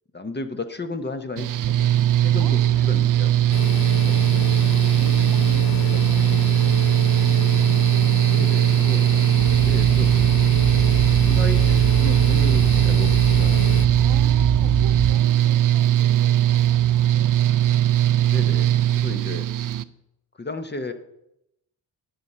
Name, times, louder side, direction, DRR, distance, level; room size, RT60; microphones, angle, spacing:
voice 1, 0.1-1.9 2.2-3.5 3.9-4.5 5.9-6.0 8.3-9.1 9.6-10.1 10.7-13.7 18.3-19.5 20.4-20.9, left 2 dB, 25° left, 9 dB, 0.9 m, -34 dB
Mechanical fan, 1.4-19.8, right 12 dB, 50° right, 0.5 m, -19 dB
voice 2, 2.4-3.0 3.9-4.0 5.0-7.3 7.9-8.5 8.9-9.7 14.0-17.4, right 6 dB, 80° right, 9 dB, 1.3 m, -42 dB
sound 1, 3.5-13.9, left 11 dB, 60° left, 0.5 m, -31 dB
sound 2, 9.4-15.1, right 5 dB, 25° right, 1.0 m, -25 dB
10.5 x 5.6 x 7.9 m, 0.84 s
cardioid pair, 100°, 41 cm